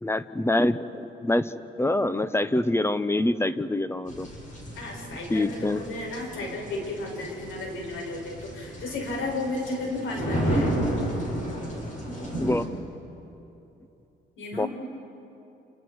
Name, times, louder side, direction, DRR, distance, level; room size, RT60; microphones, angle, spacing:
voice 1, 0.0-1.5 1.8-4.3 5.3-5.8 12.4-12.9 14.5-14.7, left 1 dB, 10° left, 13 dB, 0.9 m, -25 dB
sound 1, 4.1-12.6, right 1 dB, 40° left, 6.5 m, -32 dB
voice 2, 4.8-10.7 14.4-14.7, left 2 dB, 85° left, -1 dB, 7.1 m, -33 dB
29.5 x 28.5 x 4.8 m, 2.9 s
cardioid pair, 90°, 20 cm